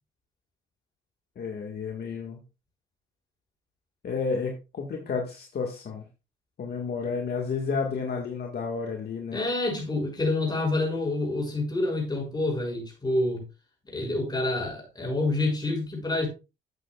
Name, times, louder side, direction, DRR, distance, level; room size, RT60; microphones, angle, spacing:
voice 1, 1.4-2.4 4.0-6.1 6.6-9.4, left 5 dB, 55° left, 1.8 m, -31 dB
voice 2, 9.3-13.4 13.9-16.3, left 2 dB, 20° left, 6.1 m, -27 dB
13.0 x 8.0 x 2.4 m
cardioid pair, 90°, 20 cm